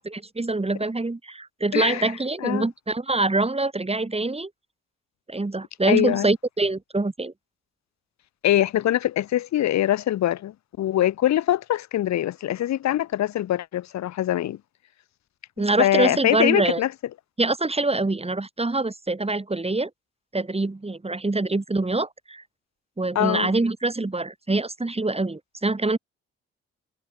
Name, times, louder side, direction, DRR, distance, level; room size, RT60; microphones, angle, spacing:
voice 1, 0.0-4.5 5.3-7.3 15.6-16.8 17.4-19.9 20.3-22.4 23.0-26.0, right 2 dB, 20° right, 4.3 m, -25 dB
voice 2, 1.7-2.1 2.4-2.7 5.9-6.3 8.4-14.6 15.8-16.9 23.1-23.5, left 12 dB, 65° left, 2.5 m, -23 dB
hypercardioid pair, 40°, 30 cm